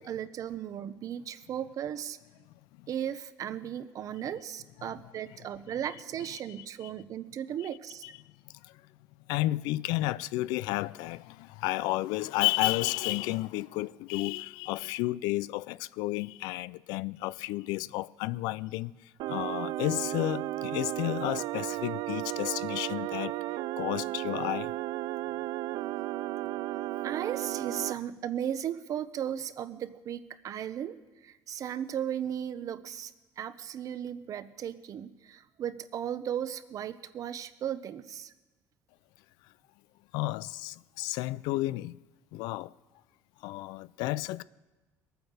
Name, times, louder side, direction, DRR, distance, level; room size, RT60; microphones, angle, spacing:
voice 1, 0.0-2.2 2.9-8.0 27.0-31.0 31.2-33.1 33.4-38.3, right 9 dB, 55° right, 0.9 m, -36 dB
voice 2, 9.3-11.3 11.6-18.9 19.3-23.3 23.8-24.7 40.1-41.9 42.3-42.7 43.4-44.4, left 18 dB, 85° left, 0.4 m, -31 dB
sound 1, 19.2-27.9, right 16 dB, 75° right, 0.4 m, -34 dB
20.5 x 9.1 x 6.6 m
cardioid pair, 100°, 7 cm